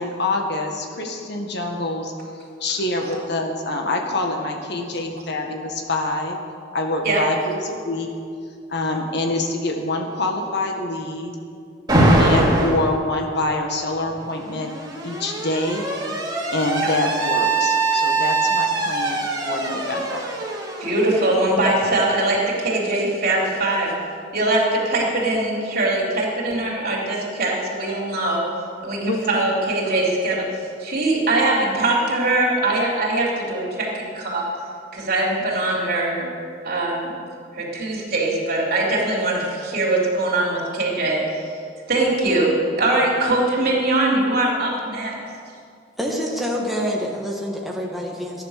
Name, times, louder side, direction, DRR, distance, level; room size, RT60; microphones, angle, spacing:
voice 1, 0.0-2.1 2.6-6.4 6.7-8.1 8.7-11.3 12.2-14.7 15.0-15.8 16.5-20.3 29.0-29.4, left 2 dB, 65° left, 2 dB, 1.7 m, -25 dB
Alarm, 11.9-12.9 14.1-21.8, right 2 dB, 25° right, 2.7 m, -22 dB
voice 2, 20.8-23.9 24.3-28.5 28.8-30.5 30.8-34.5 34.9-36.3 36.6-37.2 37.6-41.4 41.9-45.1, right 2 dB, 55° right, -4 dB, 3.9 m, -22 dB
voice 3, 46.0-48.4, equal, ahead, -3 dB, 1.6 m, -26 dB
14.5 x 10.5 x 6.7 m, 2.3 s
head